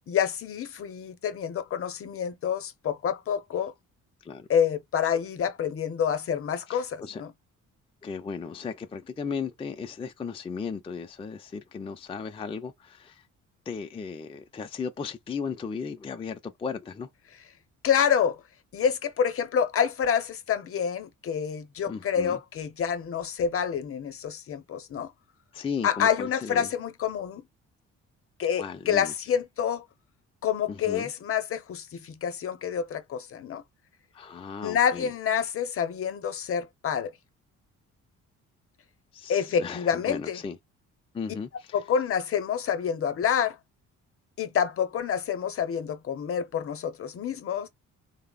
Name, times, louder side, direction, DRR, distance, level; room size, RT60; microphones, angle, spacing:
voice 1, 0.1-3.7 4.5-7.3 17.8-18.4 18.7-25.1 25.8-27.4 28.4-29.9 30.4-33.6 34.6-37.1 39.3-40.4 41.7-43.6 44.4-47.7, left 8 dB, 50° left, 0.7 m, -27 dB
voice 2, 6.7-7.2 8.0-13.3 13.7-17.1 21.9-22.4 25.5-26.7 28.5-29.1 30.7-31.1 34.1-35.1 39.1-40.6 41.1-41.8, left 5 dB, 20° left, 0.3 m, -36 dB
3.1 x 2.0 x 2.3 m
cardioid pair, 90°, 30 cm